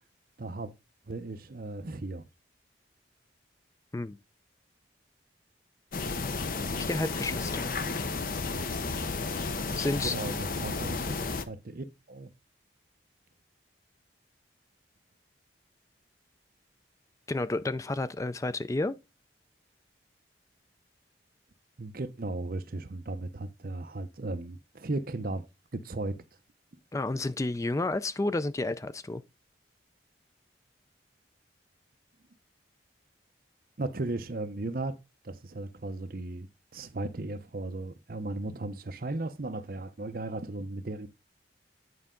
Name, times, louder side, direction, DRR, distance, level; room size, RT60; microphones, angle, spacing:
voice 1, 0.4-0.7 1.1-2.3 9.9-11.1 11.5-12.3 21.8-25.5 25.7-26.1 33.8-35.0 35.2-36.5 36.7-41.1, right 2 dB, 50° right, 0.7 m, -36 dB
sound 1, 5.9-11.4, left 3 dB, 50° left, 0.8 m, -32 dB
voice 2, 6.8-7.7 9.8-10.2 17.3-18.9 26.9-29.2, left 2 dB, 15° left, 0.3 m, -31 dB
9.5 x 5.4 x 3.8 m
head